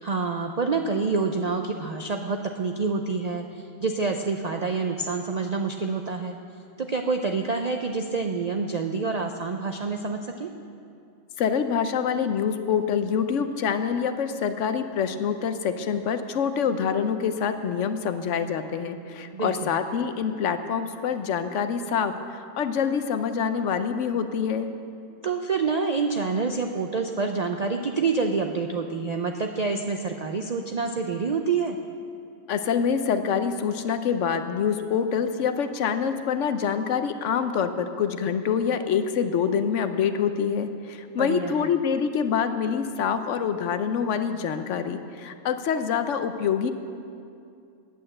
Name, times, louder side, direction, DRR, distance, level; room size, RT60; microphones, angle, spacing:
voice 1, 0.0-6.4 6.8-10.5 19.3-19.7 25.2-31.8 41.2-41.7, right 4 dB, 60° right, 4 dB, 0.4 m, -27 dB
voice 2, 11.4-24.7 32.5-46.7, left 7 dB, 75° left, 9 dB, 1.0 m, -26 dB
9.4 x 8.7 x 7.7 m, 2.5 s
omnidirectional pair, 1.3 m